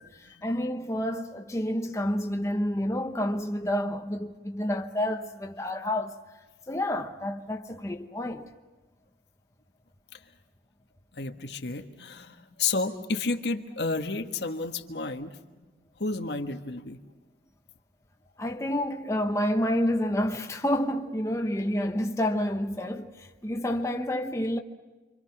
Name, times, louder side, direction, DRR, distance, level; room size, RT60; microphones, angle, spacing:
voice 1, 0.0-6.2 6.7-8.5 18.4-24.6, left 1 dB, 15° left, 1.0 m, -29 dB
voice 2, 11.1-15.6 16.0-17.0, left 3 dB, 70° left, 1.5 m, -31 dB
28.5 x 25.0 x 6.0 m
head